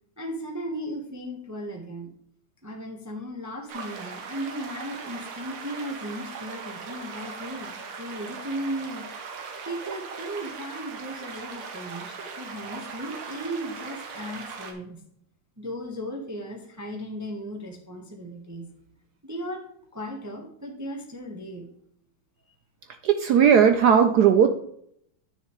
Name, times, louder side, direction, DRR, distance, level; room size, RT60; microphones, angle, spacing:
voice 1, 0.2-2.1 2.6-9.1 9.6-15.0 15.6-18.7 19.2-19.7 19.9-21.7, equal, 15° right, 1 dB, 0.7 m, -36 dB
sound 1, 3.7-14.7, right 5 dB, 90° right, 2.1 m, -39 dB
voice 2, 23.0-24.5, right 7 dB, 70° right, 7 dB, 0.9 m, -17 dB
10.0 x 6.6 x 3.2 m, 0.69 s
omnidirectional pair, 2.3 m